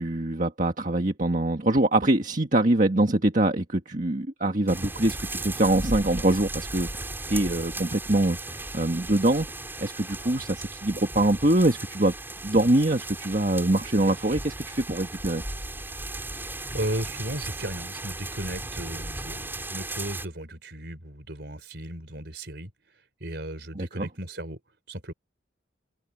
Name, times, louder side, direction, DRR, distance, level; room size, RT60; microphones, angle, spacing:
voice 1, 0.0-9.5 9.8-12.1 12.4-15.4 23.7-24.1, right 1 dB, 40° right, 1.7 m, -24 dB
sound 1, 4.7-20.3, right 2 dB, 10° right, 6.2 m, -36 dB
voice 2, 16.7-22.7 23.2-24.6 24.9-25.1, right 1 dB, 60° right, 4.4 m, -35 dB
open air
head